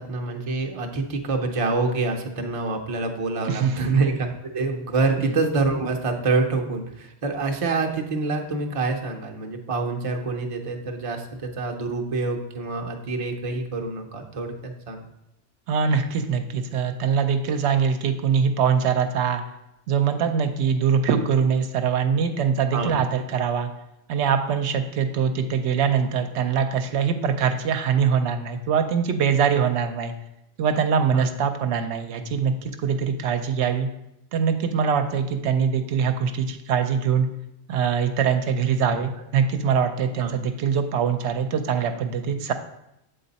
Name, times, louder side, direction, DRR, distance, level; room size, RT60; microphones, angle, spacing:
voice 1, 0.0-15.1 22.7-22.9 31.1-31.3 40.2-40.3, right 3 dB, 35° right, 2 dB, 0.6 m, -26 dB
voice 2, 3.4-4.1 5.2-5.3 15.7-19.4 19.9-23.7 24.1-30.1 30.6-33.9 34.3-37.3 37.7-42.5, right 7 dB, 80° right, 7 dB, 0.8 m, -23 dB
7.7 x 3.9 x 4.0 m, 0.84 s
omnidirectional pair, 1.1 m